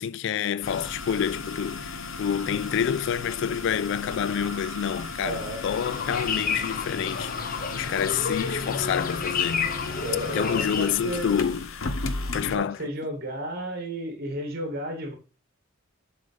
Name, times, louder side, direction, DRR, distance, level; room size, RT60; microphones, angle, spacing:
voice 1, 0.0-9.7 10.3-12.0 12.3-12.9, left 8 dB, 60° left, 0.3 m, -28 dB
sound 1, 0.6-12.6, left 3 dB, 75° left, 0.8 m, -36 dB
sound 2, 4.0-7.0 8.3-8.4, right 1 dB, 5° right, 3.3 m, -48 dB
voice 2, 5.2-5.6 10.0-11.3 12.5-15.1, right 1 dB, 50° right, 2.2 m, -33 dB
sound 3, 5.7-10.9, left 5 dB, 45° left, 0.7 m, -30 dB
7.7 x 4.9 x 5.2 m
head